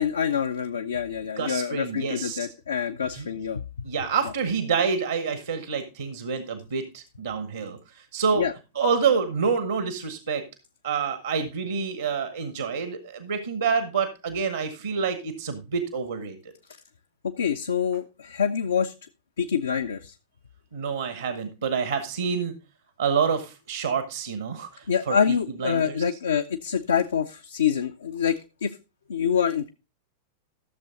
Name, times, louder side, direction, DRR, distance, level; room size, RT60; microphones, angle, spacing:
voice 1, 0.0-3.6 8.4-8.5 17.2-18.9 19.4-20.1 24.9-28.8 29.1-29.7, left 7 dB, 70° left, 8 dB, 0.5 m, -26 dB
voice 2, 1.4-2.5 3.1-3.3 3.8-8.5 8.7-10.4 10.8-16.4 20.7-22.5 23.0-26.0, right 6 dB, 70° right, 10 dB, 1.2 m, -27 dB
13.5 x 6.8 x 3.7 m, 0.29 s
figure-of-eight pair, 90°, 0 cm